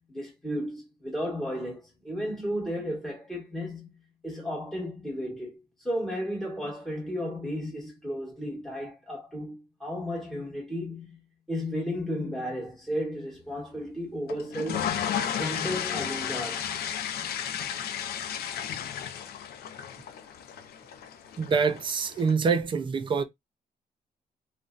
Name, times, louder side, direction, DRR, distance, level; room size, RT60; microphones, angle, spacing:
voice 1, 0.1-3.9 4.2-11.2 11.5-15.0 15.3-16.8, equal, 5° left, 1.2 m, -34 dB
sound 1, 14.3-22.3, left 9 dB, 85° left, 0.5 m, -33 dB
voice 2, 21.4-23.2, right 5 dB, 30° right, 0.4 m, -25 dB
3.9 x 2.1 x 2.4 m
wide cardioid pair, 175°, 16 cm